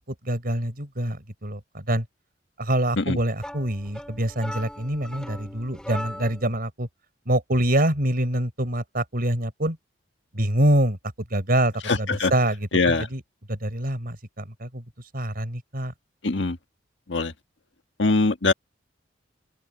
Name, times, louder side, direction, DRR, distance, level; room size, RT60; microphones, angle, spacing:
voice 1, 0.2-2.0 2.6-6.9 7.3-9.8 10.3-11.0 11.3-13.2 13.5-14.8 15.1-15.9, right 1 dB, 50° right, 5.1 m, -25 dB
sound 1, 3.4-6.5, equal, 5° left, 6.7 m, -38 dB
voice 2, 11.8-12.3 12.7-13.1 16.2-16.6 17.1-17.3 18.0-18.5, left 3 dB, 70° left, 1.7 m, -22 dB
open air
head